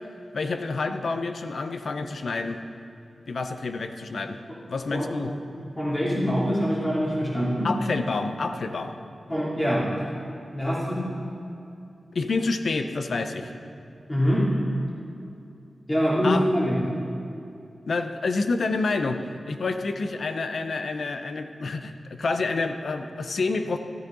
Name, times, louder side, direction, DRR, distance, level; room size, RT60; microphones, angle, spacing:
voice 1, 0.3-2.6 3.3-4.4 4.7-5.3 7.6-8.9 12.1-13.5 16.2-16.4 17.9-23.8, left 3 dB, 65° left, 8 dB, 0.7 m, -28 dB
voice 2, 5.8-7.7 9.3-9.9 10.5-11.1 14.1-14.5 15.9-16.8, equal, 15° left, -7 dB, 3.1 m, -24 dB
13.5 x 13.0 x 3.9 m, 2.6 s
wide cardioid pair, 130°, 0 cm